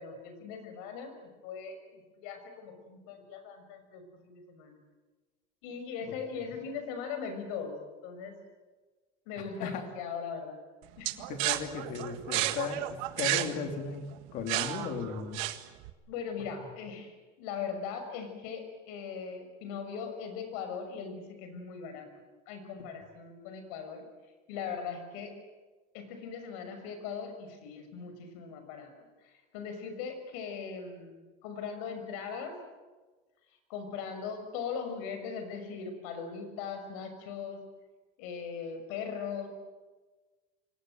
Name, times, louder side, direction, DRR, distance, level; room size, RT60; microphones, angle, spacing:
voice 1, 0.0-4.8 5.6-8.3 9.3-10.6 11.0-11.3 16.1-17.1 17.4-22.1 22.5-24.0 24.5-25.4 25.9-28.9 29.2-32.6 33.7-37.6 38.2-39.5, left 6 dB, 80° left, 7 dB, 6.4 m, -39 dB
sound 1, 11.0-15.9, right 16 dB, 75° right, 1.7 m, -32 dB
voice 2, 11.3-15.4, left 5 dB, 45° left, 5 dB, 3.2 m, -36 dB
28.0 x 24.0 x 7.8 m, 1.3 s
cardioid pair, 175°, 18 cm